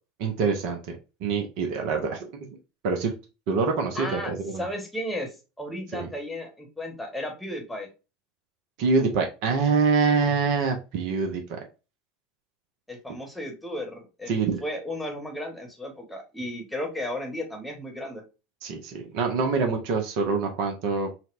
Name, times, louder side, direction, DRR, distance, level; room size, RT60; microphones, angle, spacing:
voice 1, 0.2-1.0 1.2-2.2 2.8-3.1 3.5-4.6 5.9-6.1 8.8-11.6 14.3-14.6 18.6-21.1, right 4 dB, 55° right, 3 dB, 0.6 m, -25 dB
voice 2, 3.9-7.9 12.9-14.3 14.6-18.2, left 1 dB, 5° left, 2 dB, 1.0 m, -34 dB
4.1 x 2.1 x 2.4 m, 0.29 s
figure-of-eight pair, 75°, 0 cm